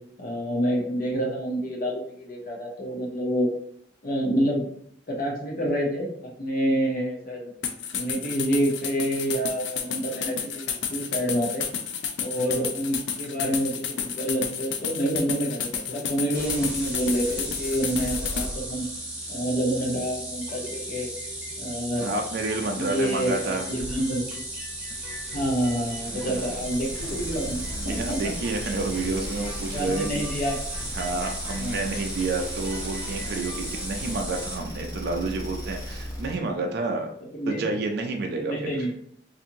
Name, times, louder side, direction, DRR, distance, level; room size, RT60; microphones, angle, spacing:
voice 1, 0.2-3.5 4.0-4.6 5.1-6.1 6.4-7.5 7.9-11.7 12.2-18.9 19.3-21.1 21.6-22.1 22.8-24.2 25.3-28.3 29.7-30.6 31.6-31.9 37.3-37.6 38.4-38.9, right 1 dB, 50° left, 0 dB, 0.8 m, -28 dB
sound 1, 7.6-18.5, left 7 dB, 70° left, 0.4 m, -31 dB
sound 2, 16.3-34.6, right 1 dB, 5° right, 0.9 m, -35 dB
voice 2, 22.0-23.7 26.1-26.5 27.8-30.2 30.9-37.1 37.5-38.7, right 3 dB, 60° right, 3 dB, 0.4 m, -29 dB
sound 3, 26.3-36.5, equal, 20° left, 0.6 m, -37 dB
2.8 x 2.5 x 2.6 m, 0.65 s
head